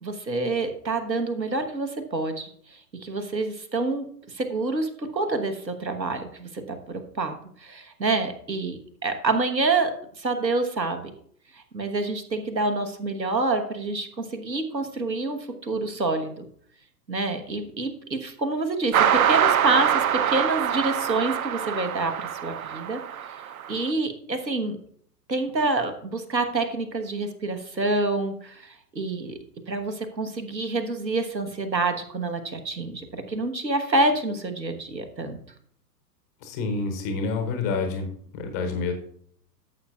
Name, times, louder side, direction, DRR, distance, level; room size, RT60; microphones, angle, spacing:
voice 1, 0.0-11.1 11.5-16.4 17.1-23.4 23.7-24.8 25.3-29.4 29.7-35.4, right 3 dB, 85° right, 7 dB, 1.3 m, -27 dB
sound 1, 18.9-23.7, right 9 dB, 60° right, 0.6 m, -24 dB
voice 2, 36.4-38.1 38.3-38.9, left 4 dB, 10° left, 5 dB, 0.4 m, -28 dB
13.5 x 7.5 x 2.3 m, 0.63 s
figure-of-eight pair, 105°, 50 cm